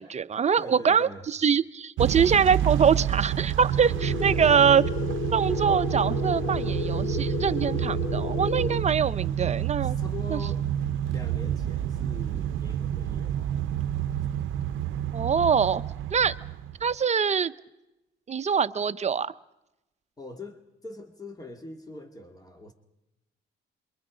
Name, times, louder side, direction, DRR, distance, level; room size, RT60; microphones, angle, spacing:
voice 1, 0.0-4.8 5.3-10.0 10.3-10.4 15.1-15.8 16.1-16.3 16.8-17.5 18.3-19.3, right 7 dB, 35° right, 12 dB, 0.7 m, -24 dB
voice 2, 0.6-1.2 4.0-4.4 9.8-10.7 11.1-13.6 20.2-22.7, left 2 dB, 20° left, 4 dB, 2.3 m, -42 dB
Motor vehicle (road) / Engine starting / Accelerating revving vroom, 2.0-17.0, right 10 dB, 75° right, 0.7 m, -29 dB
sound 1, 3.9-8.9, left 7 dB, 50° left, 1.0 m, -33 dB
27.5 x 23.5 x 5.1 m, 0.93 s
cardioid pair, 90°, 20 cm